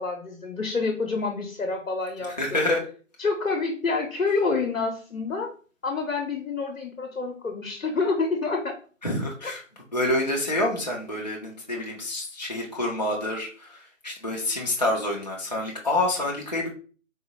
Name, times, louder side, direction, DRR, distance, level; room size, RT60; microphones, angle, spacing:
voice 1, 0.0-2.4 3.2-5.5 5.8-8.8 9.4-9.5, left 4 dB, 85° left, 2 dB, 0.7 m, -27 dB
voice 2, 2.2-2.8 9.0-9.6 9.9-13.8 14.0-16.7, left 1 dB, 35° left, -2 dB, 0.4 m, -27 dB
3.7 x 2.1 x 2.7 m, 0.39 s
figure-of-eight pair, 155°, 39 cm